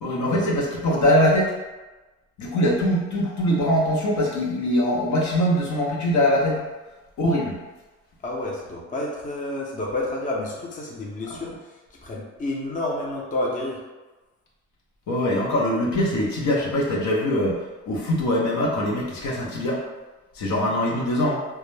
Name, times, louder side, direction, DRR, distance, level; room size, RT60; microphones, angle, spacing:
voice 1, 0.0-1.5 2.4-6.6 7.2-7.6 11.3-11.4 15.1-19.8 20.3-21.5, left 1 dB, 70° left, -3 dB, 0.7 m, -22 dB
voice 2, 8.2-11.5 12.0-13.8, left 2 dB, 25° left, -3 dB, 0.5 m, -29 dB
2.2 x 2.0 x 3.1 m, 1.2 s
cardioid pair, 90°, 30 cm